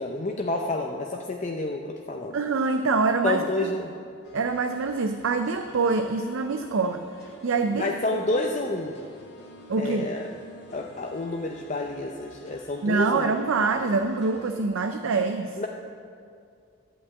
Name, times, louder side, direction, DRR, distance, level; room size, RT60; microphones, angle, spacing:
voice 1, 0.0-2.3 3.2-3.9 7.7-9.0 9.8-10.3 10.7-13.5 15.6-15.7, left 2 dB, 35° left, 1 dB, 0.5 m, -29 dB
voice 2, 2.3-3.7 4.3-7.1 7.4-8.2 9.7-10.1 12.8-15.6, right 4 dB, 65° right, 7 dB, 0.5 m, -25 dB
sound 1, 4.2-14.6, equal, 50° left, 1.5 m, -48 dB
12.0 x 5.4 x 8.3 m, 2.3 s
head